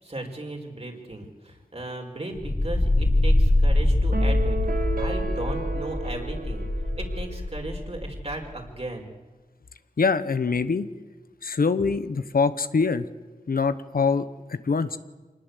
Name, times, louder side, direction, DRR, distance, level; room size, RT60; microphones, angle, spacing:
voice 1, 0.0-6.7 7.0-9.1, right 2 dB, 45° right, 2 dB, 5.2 m, -36 dB
sound 1, 2.4-8.4, left 1 dB, 40° left, 2.7 m, -24 dB
sound 2, 4.1-7.6, right 4 dB, 80° right, 2.0 m, -33 dB
voice 2, 10.0-10.9 11.4-13.0 13.5-15.0, left 4 dB, 80° left, 12 dB, 1.1 m, -24 dB
25.5 x 19.5 x 8.3 m, 1.3 s
cardioid pair, 45°, 15 cm